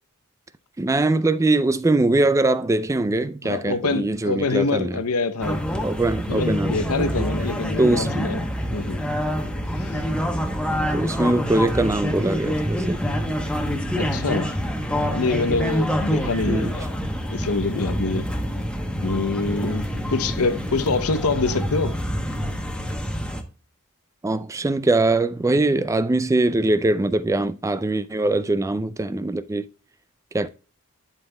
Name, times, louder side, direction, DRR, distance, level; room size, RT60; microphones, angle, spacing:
voice 1, 0.8-5.0 5.8-7.3 7.8-8.3 10.9-13.0 16.4-16.7 24.2-29.7 30.3-30.5, right 2 dB, 15° right, 0.3 m, -22 dB
voice 2, 3.4-5.6 6.3-8.4 8.7-9.0 9.8-10.0 14.0-14.5 15.0-16.9 17.3-18.3 19.0-22.0, left 3 dB, 85° left, 0.7 m, -25 dB
sound 1, 5.4-23.4, equal, 5° left, 0.9 m, -26 dB
11.5 x 5.4 x 2.2 m
head